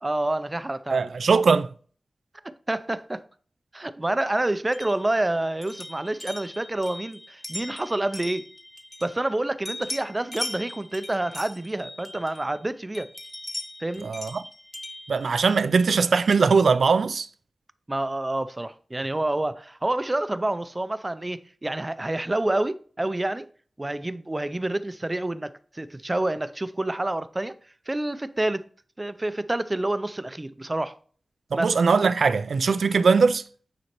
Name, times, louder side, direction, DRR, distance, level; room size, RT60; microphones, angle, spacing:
voice 1, 0.0-1.1 2.7-3.2 3.7-8.4 9.0-13.1 13.8-14.1 17.9-23.5 23.8-27.5 27.9-28.7 29.0-30.9 31.5-31.8, right 1 dB, 25° right, 0.4 m, -28 dB
voice 2, 0.9-1.7 14.0-14.4 15.1-17.3 31.5-33.4, right 5 dB, 90° right, 0.3 m, -20 dB
sound 1, 4.7-9.4 9.6-12.6 12.9-16.0, left 1 dB, 25° left, 1.0 m, -39 dB
9.2 x 4.2 x 3.0 m
wide cardioid pair, 95°, 0 cm